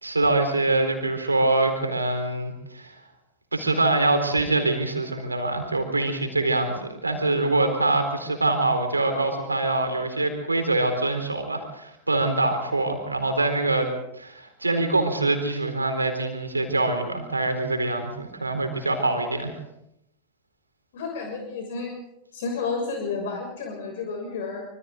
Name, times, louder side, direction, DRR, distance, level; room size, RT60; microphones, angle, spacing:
voice 1, 0.0-2.9 3.5-19.5, right 2 dB, 80° right, 6 dB, 4.2 m, -24 dB
voice 2, 20.9-21.9 22.3-24.6, left 4 dB, 55° left, 1 dB, 6.5 m, -31 dB
26.5 x 25.5 x 3.9 m, 0.83 s
figure-of-eight pair, 90°, 0 cm